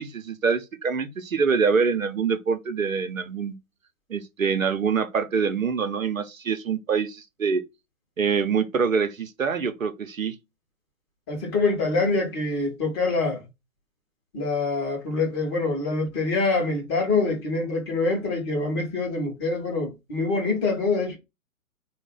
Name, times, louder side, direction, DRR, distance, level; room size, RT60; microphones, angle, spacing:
voice 1, 0.0-3.6 4.1-7.6 8.2-10.4, right 5 dB, 70° right, 0.8 m, -25 dB
voice 2, 11.3-13.4 14.3-21.2, left 3 dB, 20° left, 0.9 m, -25 dB
4.0 x 2.4 x 3.6 m
figure-of-eight pair, 130°, 41 cm